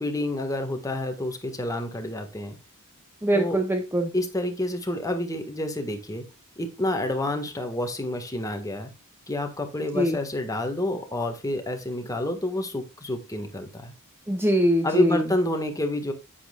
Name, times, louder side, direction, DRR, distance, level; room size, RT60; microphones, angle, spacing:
voice 1, 0.0-2.6 3.3-3.6 4.1-6.2 6.6-8.9 9.3-13.9 14.8-16.1, left 1 dB, 15° left, 5 dB, 1.6 m, -28 dB
voice 2, 3.2-4.1 9.9-10.2 14.3-15.3, equal, 10° right, 5 dB, 0.7 m, -23 dB
9.8 x 8.5 x 2.4 m, 0.27 s
head